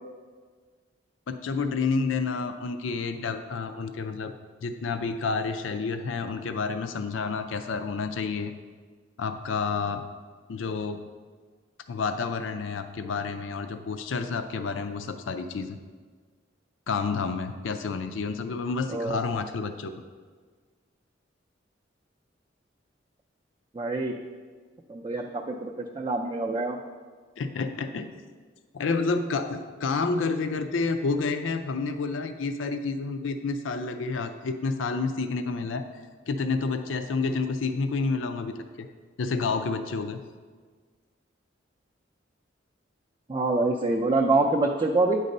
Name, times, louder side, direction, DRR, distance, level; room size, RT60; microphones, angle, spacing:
voice 1, 1.3-4.3 4.6-8.5 9.2-10.1 10.5-11.0 11.9-15.8 16.9-19.9 27.4-28.1 28.7-35.8 36.3-38.9 39.2-40.2, left 4 dB, 80° left, 8 dB, 0.5 m, -29 dB
voice 2, 23.7-24.2 24.9-26.8 43.3-45.2, right 2 dB, 25° right, 0 dB, 0.4 m, -25 dB
9.2 x 4.1 x 5.3 m, 1.5 s
head